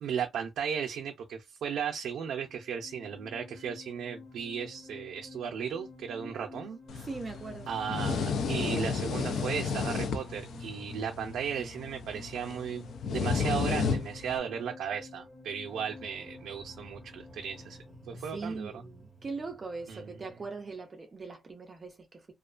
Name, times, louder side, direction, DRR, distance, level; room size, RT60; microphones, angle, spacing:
voice 1, 0.0-6.8 7.7-12.8 13.1-17.8 18.1-18.8 19.9-20.2, right 7 dB, 85° right, 0.4 m, -36 dB
sound 1, 2.2-20.7, left 2 dB, ahead, 0.9 m, -50 dB
sound 2, 6.9-14.4, left 5 dB, 65° left, 0.4 m, -33 dB
voice 2, 7.0-7.9 18.1-22.2, right 4 dB, 25° right, 0.4 m, -41 dB
2.4 x 2.2 x 2.4 m
wide cardioid pair, 175°, 0 cm